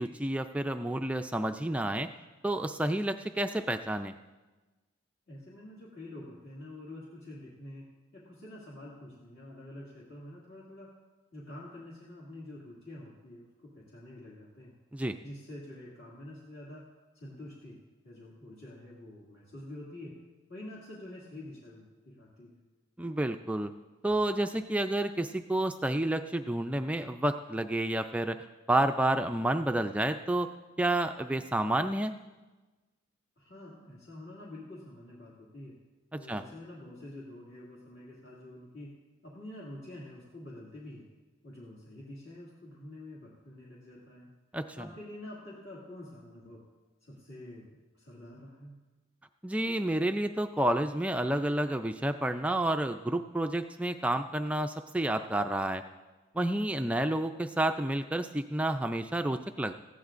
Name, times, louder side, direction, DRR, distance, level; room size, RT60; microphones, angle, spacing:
voice 1, 0.0-2.1 2.4-4.1 14.9-15.2 23.0-23.7 24.0-28.4 28.7-30.5 30.8-32.1 36.3-36.4 44.5-44.9 49.4-55.8 56.3-59.7, right 1 dB, 5° right, 7 dB, 0.3 m, -30 dB
voice 2, 5.3-7.9 8.1-10.9 11.3-14.7 15.2-16.9 17.1-20.2 20.5-22.6 33.4-35.8 36.2-39.0 39.2-41.1 41.4-44.3 44.8-46.7 47.0-48.8, left 1 dB, 55° left, -6 dB, 2.1 m, -47 dB
18.5 x 15.0 x 2.5 m, 1.2 s
head